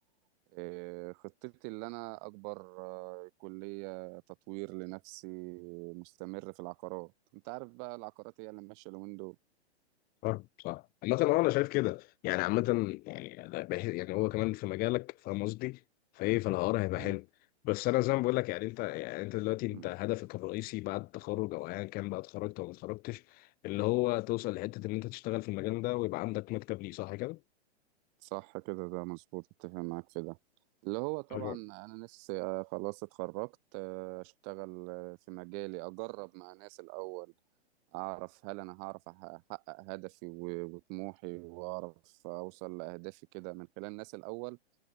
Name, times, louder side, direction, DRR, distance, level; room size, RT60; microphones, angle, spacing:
voice 1, 0.5-4.2 4.5-9.4 17.0-17.2 19.7-19.9 28.2-30.4 30.8-37.3 37.9-41.9 42.2-44.6, right 40 dB or more, 35° right, 4.1 m, -41 dB
voice 2, 10.2-15.8 16.2-17.3 17.6-27.4 31.3-31.6, left 21 dB, 25° left, 1.8 m, -33 dB
hypercardioid pair, 140°, 33 cm